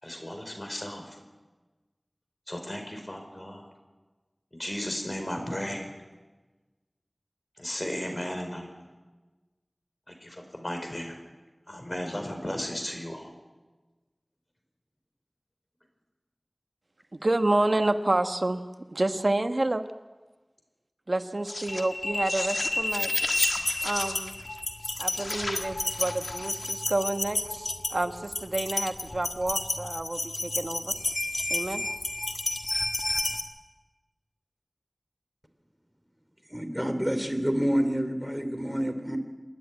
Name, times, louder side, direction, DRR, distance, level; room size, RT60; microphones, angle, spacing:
voice 1, 0.0-1.2 2.5-3.6 4.5-5.9 7.6-8.7 10.1-11.2 11.7-13.3, equal, 40° left, 4 dB, 4.7 m, -35 dB
voice 2, 17.1-18.6 18.9-19.8 21.1-23.1 23.8-24.3 25.0-30.9 31.5-31.8, right 2 dB, 80° right, 8 dB, 1.2 m, -29 dB
sound 1, 21.5-33.4, left 2 dB, 90° left, 1.6 m, -30 dB
voice 3, 36.5-39.2, equal, 10° right, 7 dB, 2.8 m, -28 dB
27.5 x 10.5 x 9.8 m, 1.2 s
wide cardioid pair, 40°, 0 cm